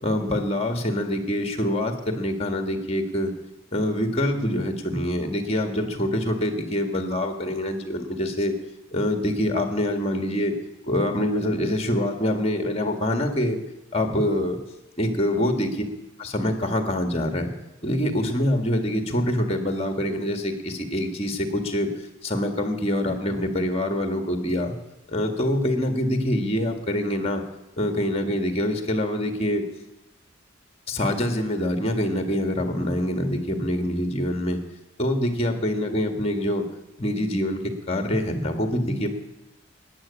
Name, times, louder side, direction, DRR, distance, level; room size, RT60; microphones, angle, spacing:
voice 1, 0.0-3.3 3.7-8.5 8.9-10.5 10.9-13.6 13.9-14.6 15.0-15.7 16.2-17.5 17.8-21.9 22.2-24.8 25.1-27.4 27.8-29.6 30.9-34.6 35.0-36.6 37.0-37.6 37.9-39.1, left 1 dB, 30° left, 6 dB, 1.8 m, -25 dB
14.0 x 9.8 x 8.5 m, 0.98 s
head